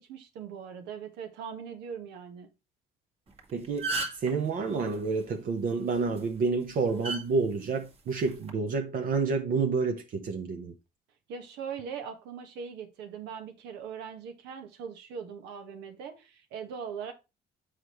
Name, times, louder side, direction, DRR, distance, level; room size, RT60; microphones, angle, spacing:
voice 1, 0.0-2.5 11.3-17.1, right 7 dB, 90° right, 1.4 m, -40 dB
sound 1, 3.3-3.4 3.6-4.3 6.0-6.2 7.0-7.2 8.2-8.5, right 3 dB, 35° right, 1.7 m, -32 dB
voice 2, 3.5-10.7, right 4 dB, 55° right, 0.9 m, -29 dB
7.4 x 4.9 x 3.1 m
cardioid pair, 110°, 17 cm